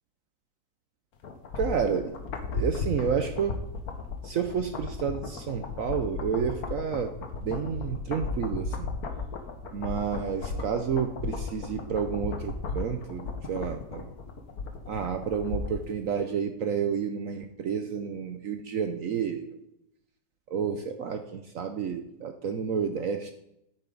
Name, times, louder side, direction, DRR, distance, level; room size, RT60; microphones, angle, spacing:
sound 1, 1.2-15.9 16.2-16.3, left 4 dB, 55° left, 1.5 m, -35 dB
voice 1, 1.6-2.2 2.5-3.6 4.2-7.1 7.4-8.9 9.7-14.1 14.9-19.6 20.5-23.3, right 7 dB, 65° right, 7 dB, 0.8 m, -30 dB
10.0 x 8.5 x 3.9 m, 0.81 s
omnidirectional pair, 2.1 m